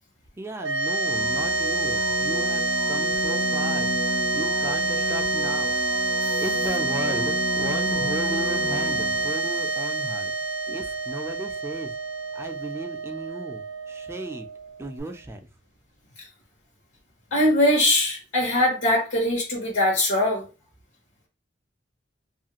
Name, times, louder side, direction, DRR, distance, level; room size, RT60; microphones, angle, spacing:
voice 1, 0.4-3.9 4.3-5.8 6.4-10.3 10.7-11.9 12.3-13.6 13.9-14.5 14.8-15.4, right 1 dB, 15° right, 5 dB, 0.4 m, -35 dB
sound 1, 0.6-15.0, right 2 dB, 75° right, 0.5 m, -27 dB
sound 2, 1.0-9.6 15.0-15.1, left 3 dB, 65° left, 0.7 m, -33 dB
voice 2, 17.3-20.5, left 1 dB, 85° left, -2 dB, 1.0 m, -22 dB
2.7 x 2.4 x 2.8 m, 0.31 s
head